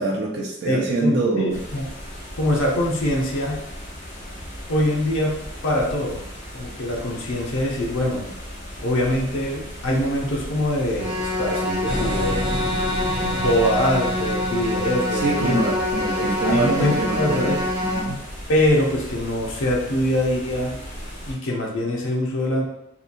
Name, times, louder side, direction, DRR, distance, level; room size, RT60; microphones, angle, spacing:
voice 1, 0.0-1.6 15.1-17.5 17.8-18.2, right 2 dB, 50° right, -2 dB, 0.4 m, -24 dB
voice 2, 0.6-1.9 2.4-3.7 4.7-6.2 6.5-8.3 8.8-12.4 13.1-15.7 16.2-17.7 18.5-20.8 21.2-22.7, left 1 dB, 70° left, -2 dB, 0.6 m, -23 dB
sound 1, 1.5-21.3, equal, 35° left, 0.8 m, -37 dB
sound 2, 11.0-18.0, left 1 dB, 30° right, 1.1 m, -26 dB
sound 3, 11.9-15.7, left 1 dB, 5° right, 0.6 m, -30 dB
2.8 x 2.2 x 2.5 m, 0.85 s
head